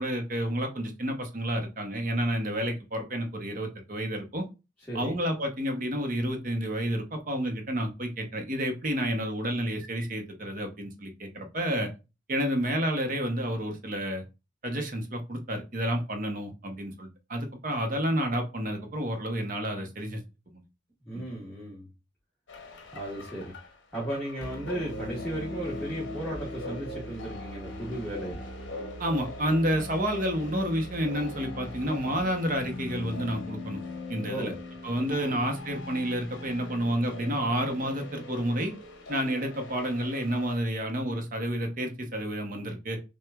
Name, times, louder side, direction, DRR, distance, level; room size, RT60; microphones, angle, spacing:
voice 1, 0.0-4.4 4.9-11.9 12.3-14.2 14.6-20.2 20.5-20.6 21.1-21.2 29.0-33.8 34.1-34.5 34.8-38.7 39.1-43.0, equal, 45° right, 5 dB, 0.8 m, -30 dB
voice 2, 21.1-21.9 22.9-23.5 23.9-28.4 34.3-34.6 35.0-35.3, right 1 dB, 5° left, -6 dB, 1.2 m, -35 dB
sound 1, 22.5-40.6, left 2 dB, 70° left, 0.8 m, -40 dB
5.8 x 2.3 x 2.3 m, 0.28 s
head